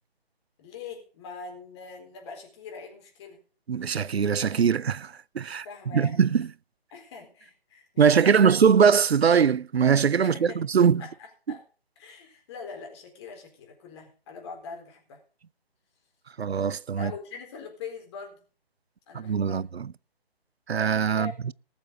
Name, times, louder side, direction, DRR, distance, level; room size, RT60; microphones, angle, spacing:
voice 1, 0.6-3.4 5.4-6.2 6.9-8.7 10.2-10.6 11.0-11.6 12.0-15.2 17.0-18.4 19.1-19.6 21.1-21.3, left 5 dB, 25° left, 4.1 m, -42 dB
voice 2, 3.7-5.7 5.9-6.5 8.0-11.0 16.4-17.1 19.1-19.9 20.7-21.5, right 7 dB, 85° right, 0.5 m, -22 dB
19.0 x 7.1 x 5.2 m
figure-of-eight pair, 145°, 31 cm